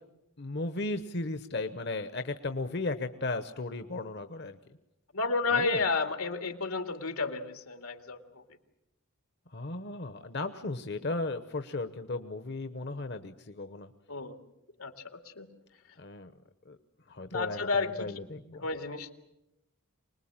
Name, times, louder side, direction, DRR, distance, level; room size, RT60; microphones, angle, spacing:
voice 1, 0.4-4.6 5.5-5.8 9.5-13.9 16.0-16.3 16.6-16.8 17.1-18.7, left 2 dB, 50° left, 9 dB, 0.9 m, -35 dB
voice 2, 5.1-8.4 14.1-14.4 14.8-14.9 15.2-15.5 17.3-18.1 18.6-19.1, left 4 dB, 90° left, 6 dB, 2.3 m, -31 dB
25.5 x 20.5 x 8.8 m, 0.89 s
head